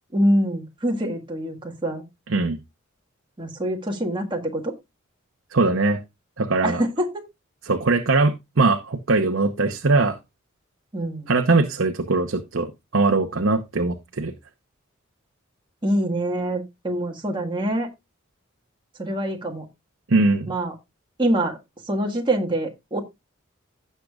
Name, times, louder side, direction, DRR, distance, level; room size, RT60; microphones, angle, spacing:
voice 1, 0.1-2.0 3.4-4.7 6.6-7.3 10.9-11.3 15.8-17.9 19.0-19.7 20.5-20.7 21.2-21.6 21.9-23.0, right 1 dB, 25° right, 1.6 m, -25 dB
voice 2, 5.5-6.0 6.4-6.8 7.6-10.2 11.3-14.3 20.1-20.5, right 3 dB, 65° right, 0.9 m, -21 dB
16.5 x 6.6 x 2.4 m
head